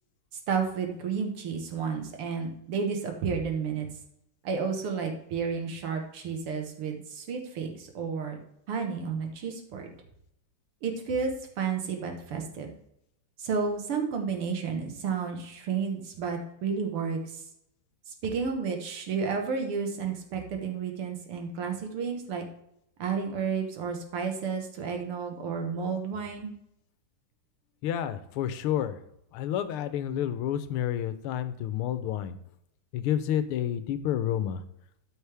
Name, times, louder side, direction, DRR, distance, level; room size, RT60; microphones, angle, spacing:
voice 1, 0.5-3.9 4.4-8.4 8.7-9.9 10.8-11.3 11.6-12.7 13.4-17.4 18.2-22.4 23.0-26.5, right 5 dB, 80° right, 3 dB, 2.3 m, -31 dB
voice 2, 27.8-29.0 29.3-32.4 32.9-34.6, left 10 dB, 80° left, 12 dB, 1.6 m, -29 dB
12.5 x 5.3 x 3.4 m, 0.75 s
omnidirectional pair, 2.4 m